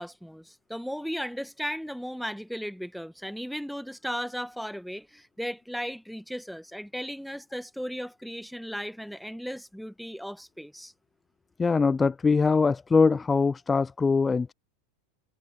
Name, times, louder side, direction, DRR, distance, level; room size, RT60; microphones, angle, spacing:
voice 1, 0.0-10.9, equal, ahead, 1.5 m, -36 dB
voice 2, 11.6-14.5, left 4 dB, 15° left, 0.3 m, -22 dB
figure-of-eight pair, 85°, 0 cm